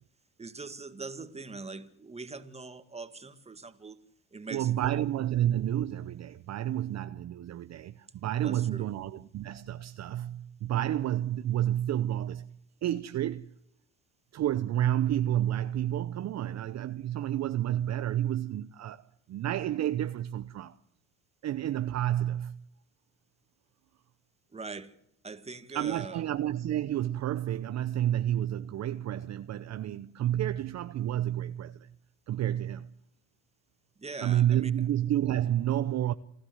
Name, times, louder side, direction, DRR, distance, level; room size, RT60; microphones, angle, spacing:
voice 1, 0.4-4.0 4.3-5.0 8.4-8.9 24.5-25.0 25.2-26.2 34.0-34.7, right 3 dB, 15° right, 1.8 m, -42 dB
voice 2, 4.5-12.5 12.8-13.5 14.3-19.0 19.3-20.8 21.4-22.6 25.7-31.9 32.3-32.9 34.2-36.1, right 12 dB, 45° right, 0.8 m, -30 dB
28.5 x 13.0 x 7.9 m
supercardioid pair, 90°, 38 cm